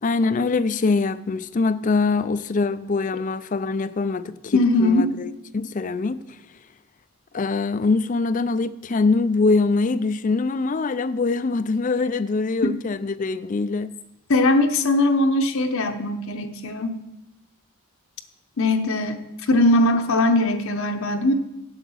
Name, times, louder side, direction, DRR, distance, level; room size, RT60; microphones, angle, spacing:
voice 1, 0.0-6.4 7.3-13.9, left 3 dB, 35° left, 0.4 m, -23 dB
voice 2, 4.5-5.1 14.3-16.9 18.6-21.3, left 2 dB, 65° left, 0.8 m, -20 dB
8.1 x 7.9 x 6.3 m
head